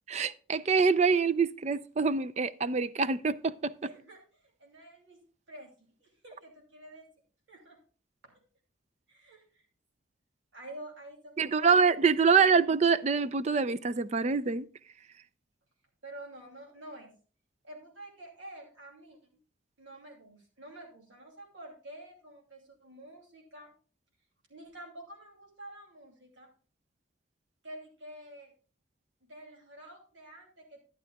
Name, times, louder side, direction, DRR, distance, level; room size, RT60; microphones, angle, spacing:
voice 1, 0.1-3.7 11.4-14.7, right 5 dB, 35° right, 0.4 m, -25 dB
voice 2, 3.8-5.2 5.5-7.1 7.5-7.8 8.2-8.3 9.1-9.7 10.5-12.0 12.2-12.6 16.0-17.2 17.6-19.2 19.8-23.7 24.5-26.5 27.6-28.5 29.3-30.8, right 1 dB, 80° right, 2.7 m, -49 dB
12.0 x 11.0 x 2.3 m
head